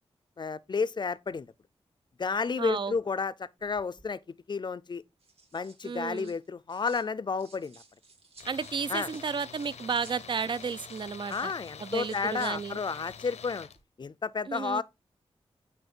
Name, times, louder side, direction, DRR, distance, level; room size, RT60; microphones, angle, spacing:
voice 1, 0.4-1.5 2.2-4.2 4.5-5.0 5.5-7.8 8.9-9.1 11.3-13.7 14.0-14.8, left 5 dB, 45° left, 0.5 m, -31 dB
voice 2, 2.6-2.9 5.8-6.3 8.5-11.5 11.8-12.8 14.5-14.8, right 6 dB, 50° right, 0.4 m, -33 dB
sound 1, 3.6-4.1 5.0-7.1 7.4-13.2 13.5-13.8, right 3 dB, 65° right, 2.3 m, -57 dB
Tools, 8.4-13.8, left 7 dB, 85° left, 0.6 m, -46 dB
9.0 x 3.1 x 4.4 m
wide cardioid pair, 70°, 11 cm